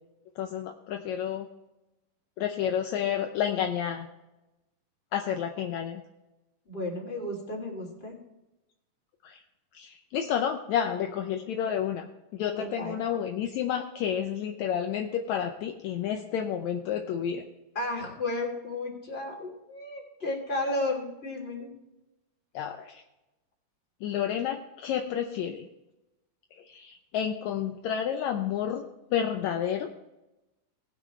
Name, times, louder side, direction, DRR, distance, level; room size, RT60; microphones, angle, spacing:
voice 1, 0.4-1.5 2.4-4.1 5.1-6.0 9.2-9.4 9.7-17.4 22.5-23.0 24.0-25.7 26.6-28.8 29.1-29.9, left 9 dB, 75° left, 5 dB, 1.7 m, -30 dB
voice 2, 6.6-8.2 12.6-13.2 17.7-21.7, left 2 dB, 15° left, -1 dB, 3.0 m, -33 dB
19.0 x 8.2 x 3.2 m, 0.99 s
omnidirectional pair, 4.1 m